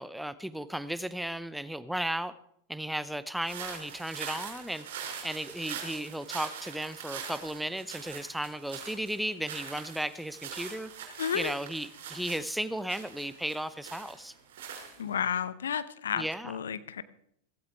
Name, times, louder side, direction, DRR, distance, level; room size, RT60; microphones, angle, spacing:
voice 1, 0.0-2.3 2.7-4.9 5.2-10.9 11.3-14.3 16.2-16.5, right 1 dB, ahead, 16 dB, 0.7 m, -35 dB
sound 1, 3.4-15.3, right 7 dB, 55° right, 4.8 m, -43 dB
voice 2, 11.2-11.5 15.0-17.0, left 8 dB, 65° left, 15 dB, 0.8 m, -32 dB
16.0 x 16.0 x 3.4 m, 0.70 s
figure-of-eight pair, 90°, 0 cm